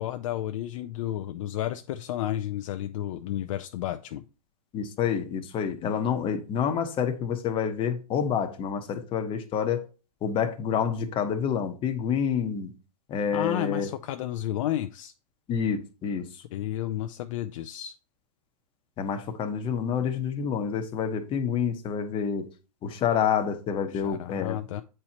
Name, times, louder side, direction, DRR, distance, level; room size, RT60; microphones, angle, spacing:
voice 1, 0.0-4.2 13.3-15.1 16.5-17.9 23.9-24.8, left 12 dB, 50° left, 0.5 m, -32 dB
voice 2, 4.7-9.9 10.2-12.7 13.1-13.9 15.5-16.4 19.0-22.5 22.8-24.6, left 7 dB, 25° left, 1.0 m, -28 dB
8.6 x 4.4 x 2.9 m
hypercardioid pair, 125°, 21 cm